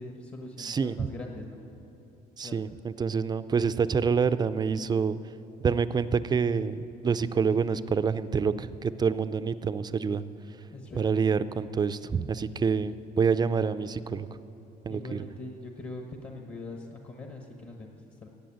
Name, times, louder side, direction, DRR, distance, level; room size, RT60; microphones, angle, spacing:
voice 1, 0.0-1.6 2.4-2.6 10.7-11.1 14.9-18.3, left 2 dB, 35° left, 2 dB, 1.3 m, -42 dB
voice 2, 0.6-1.1 2.4-5.2 5.6-10.2 10.9-14.3 14.8-15.2, right 6 dB, 25° right, 14 dB, 0.4 m, -27 dB
14.0 x 8.6 x 8.8 m, 2.9 s
cardioid pair, 110°, 17 cm